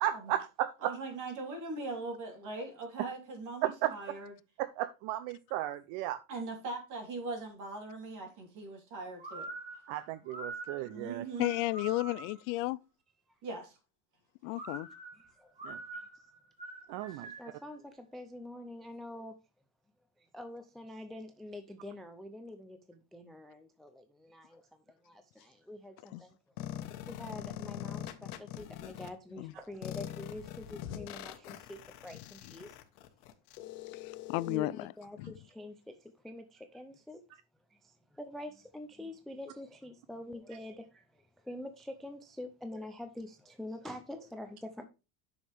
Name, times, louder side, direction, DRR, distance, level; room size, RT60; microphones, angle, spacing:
voice 1, 0.0-0.9 3.6-3.9 4.6-6.2 9.9-11.2 15.6-15.8 16.9-17.3, right 14 dB, 60° right, 0.6 m, -34 dB
voice 2, 0.8-4.3 6.3-9.5 10.8-11.5 13.4-13.8, right 3 dB, 45° right, 3.5 m, -40 dB
sound 1, 9.2-12.5 14.5-17.6, right 3 dB, 15° right, 2.8 m, -45 dB
voice 3, 11.4-12.8 14.4-14.9 26.1-26.2 29.4-29.5 34.0-34.9 35.2-35.3, left 20 dB, 70° left, 0.5 m, -33 dB
voice 4, 15.4-16.1 17.1-19.3 20.2-26.4 27.1-32.8 34.5-37.2 37.7-44.9, left 1 dB, ahead, 0.4 m, -46 dB
sound 2, 26.6-29.1 29.8-34.6, left 11 dB, 90° left, 1.3 m, -43 dB
9.4 x 6.3 x 3.4 m
cardioid pair, 145°, 42 cm